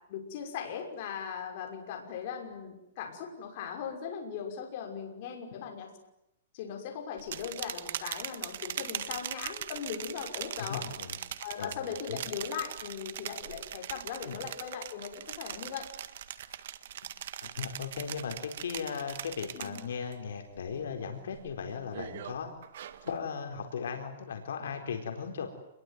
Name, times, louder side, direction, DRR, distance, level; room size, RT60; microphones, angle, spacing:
voice 1, 0.1-5.9 6.5-10.8 11.4-15.8 19.5-19.9, left 7 dB, 40° left, 3 dB, 6.0 m, -39 dB
sound 1, 7.2-20.1 20.5-20.9 21.3-23.2, right 10 dB, 60° right, 1.7 m, -41 dB
voice 2, 10.7-11.2 11.6-11.8 12.1-12.2 14.2-14.4 17.4-22.5 23.0-25.5, left 6 dB, 80° left, 3 dB, 4.3 m, -37 dB
28.5 x 22.0 x 9.4 m, 0.84 s
hypercardioid pair, 165°, 0 cm